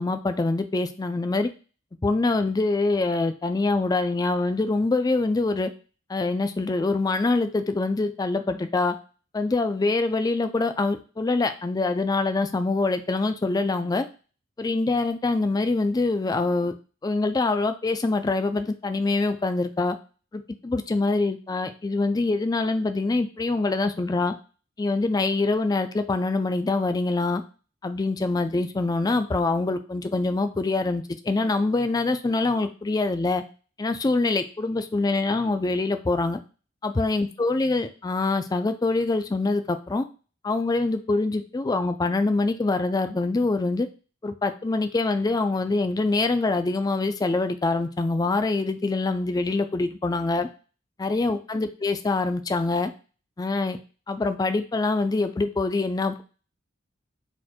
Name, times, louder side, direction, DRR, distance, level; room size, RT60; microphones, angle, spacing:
voice 1, 0.0-1.5 2.0-5.7 6.1-9.0 9.3-14.1 14.6-16.7 17.0-20.0 20.3-24.3 24.8-27.4 27.8-33.4 33.8-36.4 36.8-40.0 40.4-43.9 44.2-50.5 51.0-52.9 53.4-53.8 54.1-56.2, left 3 dB, 20° left, 9 dB, 0.3 m, -24 dB
4.3 x 2.6 x 4.2 m, 0.35 s
head